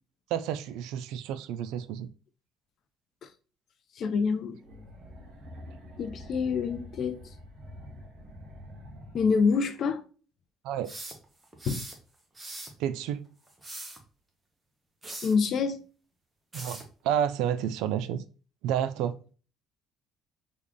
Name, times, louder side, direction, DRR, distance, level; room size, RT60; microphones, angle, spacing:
voice 1, 0.3-2.1 10.6-10.9 12.8-13.3 16.5-18.2 18.6-19.2, right 9 dB, 85° right, 0.3 m, -30 dB
voice 2, 4.0-4.6 6.0-7.2 9.1-10.0 11.7-11.9 15.2-15.8, left 5 dB, 50° left, 0.5 m, -26 dB
sound 1, 4.6-9.8, left 1 dB, 55° right, 1.1 m, -46 dB
sound 2, 10.8-12.0 12.3-12.8 13.5-14.0 15.0-15.4 16.5-16.9, right 2 dB, 15° right, 0.8 m, -41 dB
3.5 x 2.4 x 3.6 m
cardioid pair, 120°, 0 cm